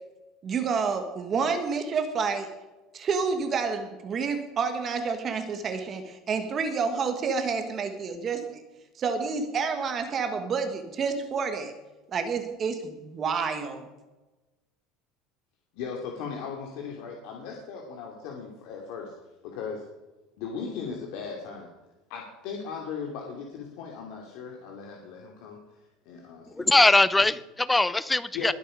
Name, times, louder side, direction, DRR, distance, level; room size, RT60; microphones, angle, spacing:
voice 1, 0.4-2.5 2.9-8.6 9.0-11.7 12.1-13.9, right 5 dB, 30° right, 7 dB, 1.5 m, -29 dB
voice 2, 15.7-19.1 19.4-19.8 20.4-21.7 22.1-26.8 27.2-27.3 28.3-28.5, left 6 dB, 65° left, 0 dB, 2.6 m, -38 dB
voice 3, 26.5-28.5, left 2 dB, 10° left, 17 dB, 0.5 m, -21 dB
21.0 x 8.3 x 5.1 m, 1.1 s
cardioid pair, 145°, 0 cm